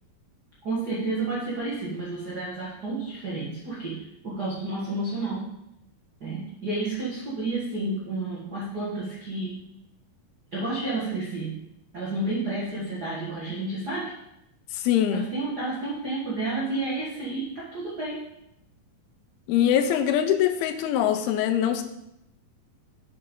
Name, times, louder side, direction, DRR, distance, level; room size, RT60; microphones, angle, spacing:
voice 1, 0.6-5.5 6.2-9.6 10.5-11.6 11.9-14.1 15.1-18.2, right 2 dB, 55° right, -7 dB, 1.1 m, -31 dB
voice 2, 14.7-15.2 19.5-21.8, left 10 dB, 85° left, 9 dB, 2.6 m, -23 dB
8.2 x 5.4 x 5.3 m, 0.84 s
omnidirectional pair, 4.4 m